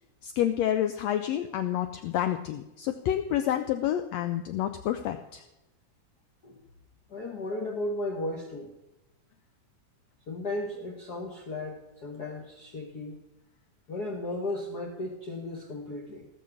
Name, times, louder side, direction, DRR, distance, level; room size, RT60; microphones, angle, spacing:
voice 1, 0.2-5.4, left 11 dB, 90° left, 8 dB, 1.5 m, -29 dB
voice 2, 7.1-8.7 10.3-13.2 13.9-16.3, left 2 dB, 65° left, 1 dB, 0.9 m, -35 dB
18.0 x 6.3 x 7.1 m, 0.94 s
omnidirectional pair, 3.7 m